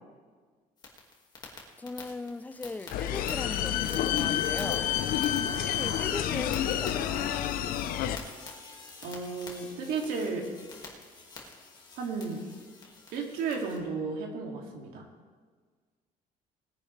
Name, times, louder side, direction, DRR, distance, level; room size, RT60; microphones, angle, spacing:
sound 1, 0.8-13.8, left 3 dB, 25° left, 2.0 m, -47 dB
voice 1, 1.8-4.9 5.7-7.3, left 3 dB, 10° left, 11 dB, 0.4 m, -39 dB
sound 2, 2.9-8.2, left 10 dB, 75° left, 0.7 m, -29 dB
voice 2, 9.0-10.5 12.0-12.4 13.1-15.0, right 4 dB, 80° right, 1 dB, 2.5 m, -33 dB
20.0 x 10.0 x 3.3 m, 1.5 s
cardioid pair, 160°, 15 cm